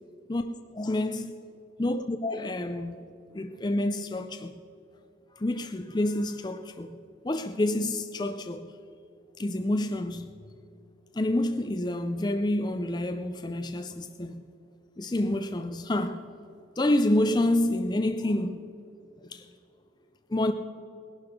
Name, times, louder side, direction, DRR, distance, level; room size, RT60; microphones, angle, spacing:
voice 1, 0.7-1.3 1.8-3.0 3.3-4.5 5.4-8.7 9.4-10.4 11.1-14.4 15.0-16.3 16.8-18.6 19.2-19.5 20.3-20.5, left 1 dB, 20° left, 0.4 m, -28 dB
18.5 x 11.5 x 5.1 m
head